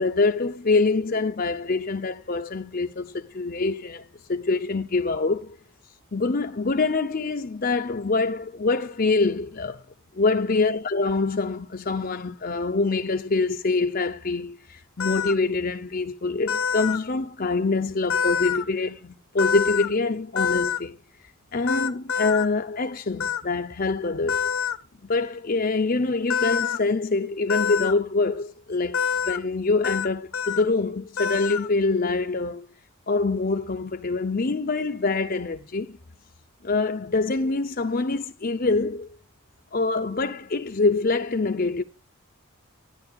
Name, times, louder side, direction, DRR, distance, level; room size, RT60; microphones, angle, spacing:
voice 1, 0.0-5.5 6.1-9.8 10.1-21.0 21.5-24.5 25.0-29.0 29.2-32.6 33.1-36.0 36.6-39.2 39.7-41.8, left 3 dB, 40° left, 0.7 m, -25 dB
sound 1, 15.0-15.3 16.5-17.0 18.1-18.6 19.4-19.9 20.4-20.8 21.7-22.5 23.2-23.4 24.3-24.8 26.3-26.8 27.5-27.9 28.9-29.4 29.8-30.1 30.3-30.6 31.2-31.7, left 7 dB, 80° left, 1.2 m, -26 dB
13.5 x 10.5 x 2.4 m
head